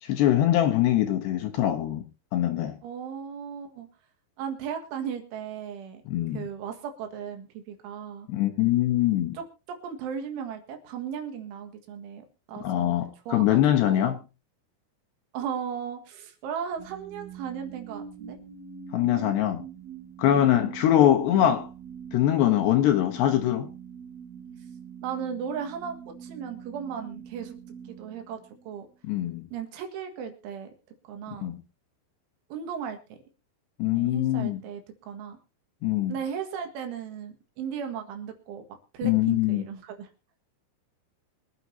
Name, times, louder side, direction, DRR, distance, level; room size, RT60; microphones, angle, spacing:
voice 1, 0.0-2.0 2.3-2.8 6.1-6.4 8.3-9.4 12.6-14.2 18.9-19.6 20.2-21.7 22.1-23.7 29.0-29.4 31.4-31.6 33.8-34.6 35.8-36.1 39.0-39.6, left 12 dB, 70° left, 2.8 m, -23 dB
voice 2, 2.8-3.9 4.4-6.0 6.3-8.3 9.3-13.0 13.3-14.1 15.3-18.4 20.3-20.8 25.0-27.6 27.9-28.4 28.7-28.9 29.5-30.7 31.1-31.5 32.5-33.2 33.9-35.4 36.1-38.7 38.9-40.1, right 7 dB, 75° right, 4.1 m, -36 dB
sound 1, 16.8-28.9, right 7 dB, 50° right, 2.0 m, -43 dB
24.0 x 9.6 x 2.8 m
omnidirectional pair, 5.8 m